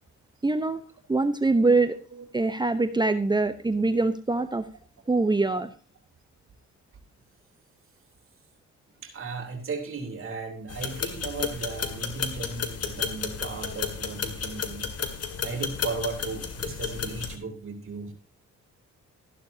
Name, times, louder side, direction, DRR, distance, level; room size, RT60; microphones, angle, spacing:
voice 1, 0.4-0.8 1.1-2.0 2.3-4.6 5.1-5.7, right 3 dB, 15° right, 10 dB, 0.9 m, -23 dB
voice 2, 9.0-14.9 15.4-18.1, right 4 dB, 45° right, 2 dB, 3.5 m, -36 dB
sound 1, 10.7-17.4, left 6 dB, 55° left, 2.2 m, -33 dB
14.0 x 12.0 x 2.8 m, 0.37 s
cardioid pair, 90°, 30 cm